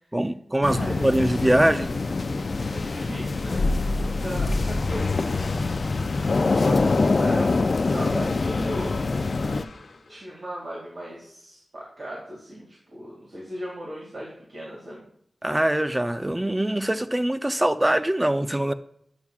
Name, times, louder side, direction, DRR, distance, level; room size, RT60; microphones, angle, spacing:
voice 1, 0.1-1.9 15.4-18.7, right 1 dB, 15° right, 10 dB, 0.5 m, -23 dB
sound 1, 0.6-9.6, left 3 dB, 55° left, 0.4 m, -24 dB
voice 2, 0.7-1.0 2.6-6.0 6.5-9.0 10.1-15.0, equal, 60° right, -4 dB, 2.1 m, -37 dB
sound 2, 4.9-10.5, left 3 dB, 90° left, 1.0 m, -42 dB
9.8 x 6.9 x 2.4 m, 0.68 s
wide cardioid pair, 80°, 0 cm